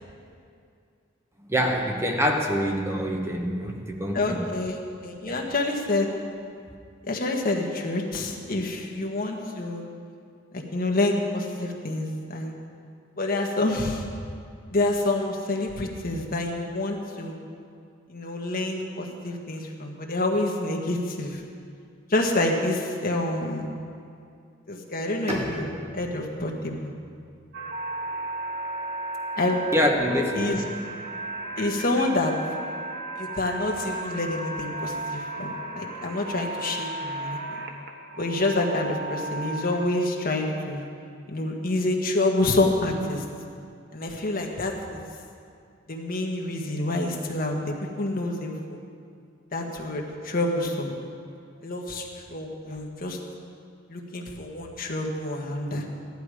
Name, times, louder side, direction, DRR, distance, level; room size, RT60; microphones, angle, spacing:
voice 1, 1.5-4.5 5.2-5.4 29.7-30.7, equal, 15° right, 2 dB, 1.0 m, -25 dB
voice 2, 4.1-6.1 7.1-9.9 10.5-12.6 13.2-14.0 14.7-17.4 18.1-21.4 22.1-23.7 24.7-26.9 29.4-29.6 30.3-30.6 31.6-32.3 33.2-37.6 38.2-40.8 41.3-43.2 43.9-45.0 45.9-48.8 49.5-50.9 51.6-53.2 53.9-55.8, left 2 dB, 50° left, 1 dB, 1.5 m, -27 dB
Bowed string instrument, 25.3-28.9, equal, 35° right, 1.9 m, -38 dB
sound 1, 27.5-39.9, right 2 dB, 60° right, 1.3 m, -34 dB
15.5 x 11.0 x 5.0 m, 2.4 s
head